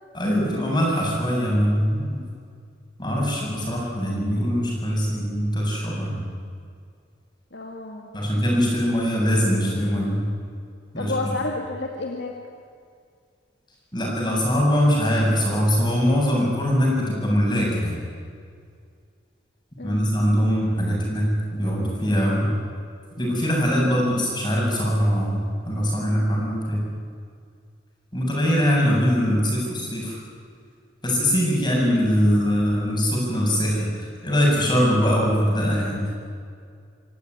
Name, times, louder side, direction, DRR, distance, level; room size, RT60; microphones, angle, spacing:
voice 1, 0.1-2.2 3.0-6.2 8.1-10.2 10.9-11.1 13.9-18.0 19.8-22.5 23.2-26.8 28.1-30.2 31.0-36.1, equal, 25° left, -2 dB, 7.8 m, -22 dB
voice 2, 7.5-8.1 11.0-12.4 19.8-20.0, left 2 dB, 60° left, 1 dB, 2.4 m, -30 dB
26.5 x 16.5 x 9.8 m, 2.2 s
head